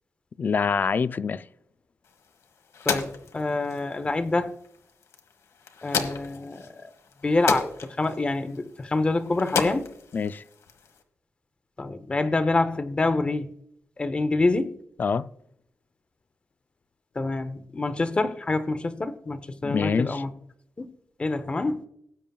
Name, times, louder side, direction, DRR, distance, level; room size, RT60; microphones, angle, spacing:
voice 1, 0.4-1.5 10.1-10.4 15.0-15.3 19.6-20.2, left 5 dB, 35° left, 0.3 m, -25 dB
sound 1, 2.0-11.0, left 6 dB, 80° left, 1.4 m, -34 dB
voice 2, 2.9-4.5 5.8-6.9 7.2-9.9 11.8-13.5 14.0-14.7 17.2-20.3 20.8-20.9 21.2-21.9, left 2 dB, 20° left, 0.7 m, -26 dB
19.0 x 8.9 x 2.3 m
wide cardioid pair, 175°, 5 cm